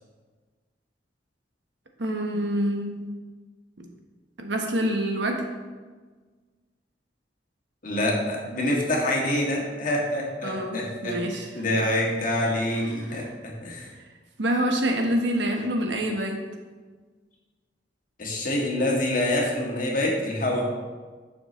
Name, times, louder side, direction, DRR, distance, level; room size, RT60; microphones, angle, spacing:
voice 1, 2.0-3.1 3.8-3.9 4.4-5.4 10.4-11.5 13.0-13.2 14.4-16.4, equal, 80° right, 3 dB, 1.3 m, -26 dB
voice 2, 7.8-11.2 11.5-13.9 18.2-20.7, left 1 dB, 50° left, -2 dB, 1.9 m, -26 dB
11.0 x 7.0 x 3.2 m, 1.4 s
head